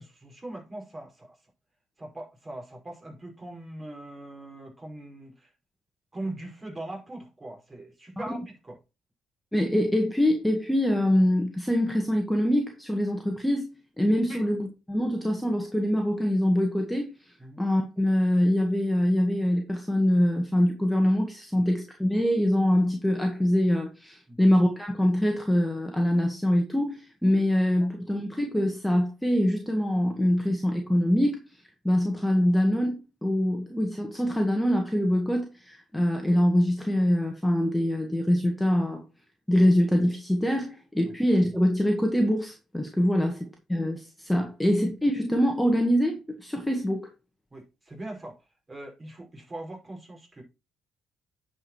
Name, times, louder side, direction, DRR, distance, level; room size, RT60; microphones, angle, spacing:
voice 1, 0.0-1.3 2.0-5.5 6.1-8.8 14.3-14.5 17.4-17.6 24.3-24.4 43.2-43.3 44.4-44.5 47.5-48.4 48.7-50.4, right 1 dB, 25° right, 5.3 m, -41 dB
voice 2, 9.5-17.1 17.6-31.4 31.8-39.0 39.5-47.1, equal, 5° left, 1.9 m, -24 dB
9.8 x 5.2 x 4.5 m
supercardioid pair, 65°, 0 cm